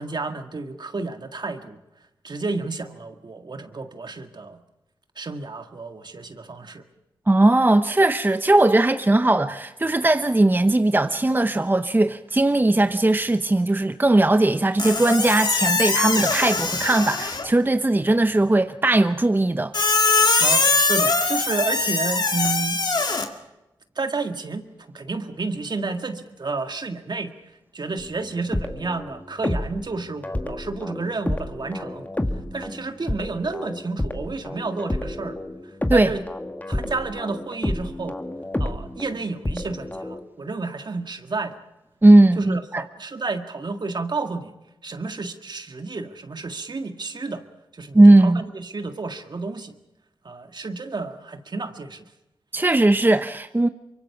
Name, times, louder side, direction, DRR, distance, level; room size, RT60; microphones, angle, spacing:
voice 1, 0.0-1.8 2.2-4.6 5.2-6.8 20.4-22.8 24.0-24.7 24.9-27.3 27.7-32.1 32.5-35.4 35.6-36.2 36.7-38.2 38.6-41.6 42.4-44.5 44.8-47.4 47.7-49.7 50.2-52.1, right 3 dB, 55° right, 1.9 m, -31 dB
voice 2, 7.3-19.7 35.9-36.1 42.0-42.8 47.9-48.4 52.5-53.7, right 2 dB, 20° right, 0.8 m, -18 dB
Squeak, 14.8-17.6 19.7-23.3, left 3 dB, 55° left, 2.1 m, -22 dB
sound 1, 28.0-29.9 30.2-40.2, left 1 dB, 20° left, 1.9 m, -30 dB
24.5 x 23.0 x 5.9 m
cardioid pair, 40°, 9 cm